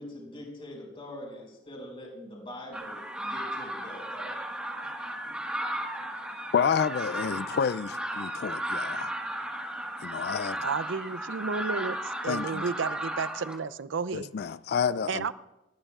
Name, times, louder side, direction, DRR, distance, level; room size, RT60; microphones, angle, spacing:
voice 1, 0.0-4.4, left 1 dB, 30° left, 5.3 m, -43 dB
sound 1, 2.7-13.6, right 1 dB, 5° right, 1.5 m, -35 dB
voice 2, 6.5-9.1 10.0-10.6 12.3-12.6 14.1-15.3, left 7 dB, 55° left, 0.3 m, -29 dB
voice 3, 10.6-14.3 15.1-15.3, right 5 dB, 70° right, 0.5 m, -32 dB
20.0 x 15.5 x 2.4 m
head